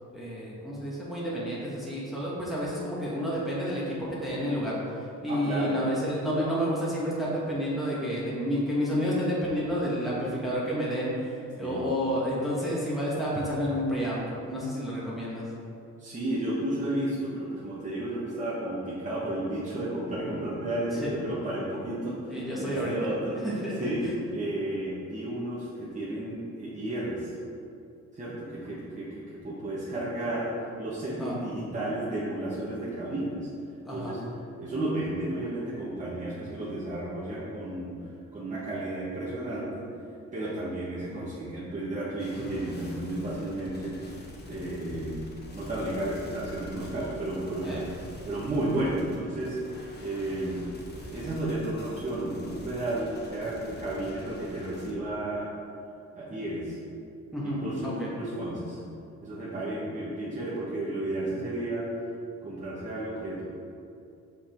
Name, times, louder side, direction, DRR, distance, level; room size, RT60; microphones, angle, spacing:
voice 1, 0.1-15.5 20.9-21.2 22.3-22.9 23.4-24.1 31.2-31.4 33.8-34.1 44.5-44.7 47.6-47.8 57.3-58.1, equal, ahead, -7 dB, 1.6 m, -30 dB
voice 2, 5.3-5.8 11.6-11.8 16.0-23.4 23.8-24.1 24.3-27.3 28.1-30.5 30.8-33.4 33.9-34.2 34.6-37.9 38.3-39.9 40.3-44.1 44.5-45.2 45.5-47.8 48.2-49.6 50.0-50.6 51.1-55.5 56.1-56.8 57.4-58.8 59.2-61.9 62.4-63.4, right 1 dB, 25° right, -9 dB, 1.5 m, -32 dB
sound 1, 42.2-54.9, left 1 dB, 35° left, 1.2 m, -46 dB
5.7 x 5.3 x 4.5 m, 2.6 s
cardioid pair, 90°, 30 cm